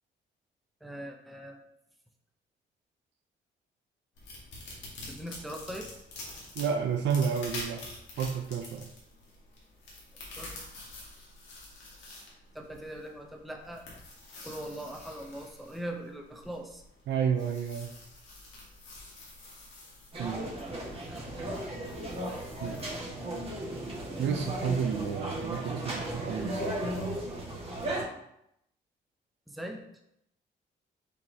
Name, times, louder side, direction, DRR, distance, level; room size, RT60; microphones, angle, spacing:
voice 1, 0.8-1.6 5.1-5.9 10.4-10.5 12.5-13.9 14.4-16.8 20.3-20.6 21.1-21.3 29.5-29.8, right 1 dB, ahead, 1 dB, 0.6 m, -41 dB
sound 1, 4.2-23.0, left 2 dB, 85° left, 1.5 m, -47 dB
voice 2, 6.6-7.9 8.2-8.9 17.1-17.9 20.2-20.4 22.6-23.0 24.2-27.2, right 7 dB, 75° right, 5 dB, 0.5 m, -31 dB
sound 2, 20.1-28.0, right 1 dB, 30° right, 1.6 m, -36 dB
5.8 x 3.1 x 2.7 m, 0.79 s
cardioid pair, 85°, 19 cm